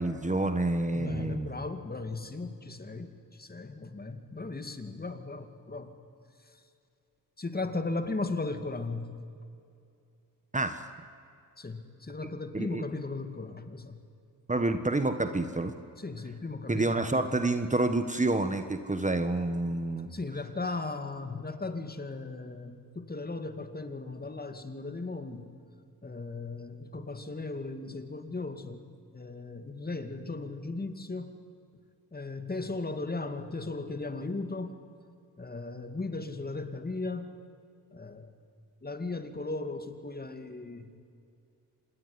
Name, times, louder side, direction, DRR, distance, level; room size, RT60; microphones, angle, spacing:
voice 1, 0.0-1.6 10.5-10.8 12.5-12.8 14.5-15.7 16.7-20.1, right 2 dB, 20° right, 9 dB, 1.4 m, -28 dB
voice 2, 0.9-5.9 6.4-6.6 7.4-9.1 11.6-14.0 16.0-17.1 20.1-25.5 26.0-28.8 29.1-31.4 32.1-34.7 35.4-37.3 37.9-38.3 38.8-41.0, left 3 dB, 25° left, 8 dB, 2.4 m, -37 dB
26.5 x 20.0 x 9.8 m, 2.5 s
cardioid pair, 80°, 36 cm